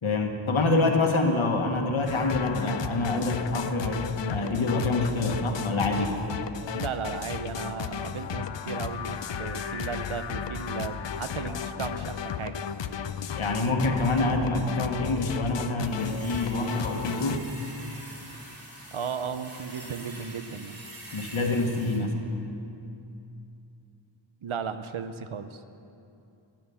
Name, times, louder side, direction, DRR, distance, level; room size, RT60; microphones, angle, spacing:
voice 1, 0.0-6.2 13.3-17.4 21.1-22.1, left 2 dB, 80° left, 3 dB, 1.5 m, -26 dB
sound 1, 2.1-17.4, left 7 dB, 65° left, 0.6 m, -34 dB
voice 2, 6.7-12.6 18.9-20.8 24.4-25.6, right 6 dB, 85° right, 10 dB, 0.8 m, -35 dB
sound 2, 15.8-22.0, right 1 dB, 45° right, 2.7 m, -45 dB
14.0 x 10.0 x 7.1 m, 2.7 s
wide cardioid pair, 65°, 48 cm